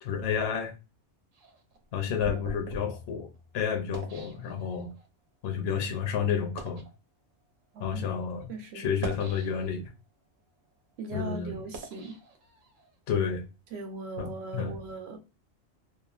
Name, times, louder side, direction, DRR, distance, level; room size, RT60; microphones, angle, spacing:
voice 1, 0.0-0.7 1.9-3.3 3.5-4.9 5.4-6.8 7.8-9.9 11.1-11.5 13.1-13.4 14.2-14.7, left 7 dB, 65° left, 0.7 m, -30 dB
sound 1, 1.3-5.1 5.7-5.9 6.4-6.9 7.7-7.9 8.8-9.9 10.4-12.9, right 2 dB, 90° right, 1.1 m, -43 dB
voice 2, 7.7-8.2 8.5-8.9 11.0-12.2 13.7-15.2, right 3 dB, 60° right, 0.9 m, -39 dB
3.0 x 2.0 x 2.3 m
omnidirectional pair, 1.3 m